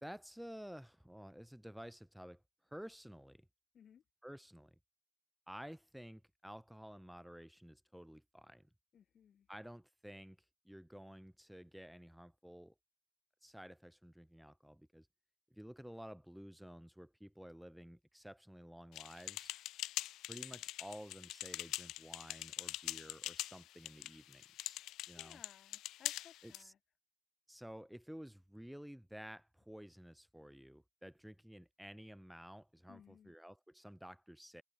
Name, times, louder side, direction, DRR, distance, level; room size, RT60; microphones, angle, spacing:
voice 1, 0.0-3.5 4.2-4.8 5.5-8.7 9.5-10.4 10.6-12.7 13.4-15.1 15.5-19.5 20.3-24.8 25.1-25.4 26.4-26.7 27.5-34.6, equal, ahead, 0.5 m, -52 dB
voice 2, 8.9-9.5 24.8-26.8 32.9-33.3, left 8 dB, 60° left, 1.4 m, -62 dB
sound 1, 18.9-26.6, left 15 dB, 90° left, 0.5 m, -44 dB
cardioid pair, 90°, 0 cm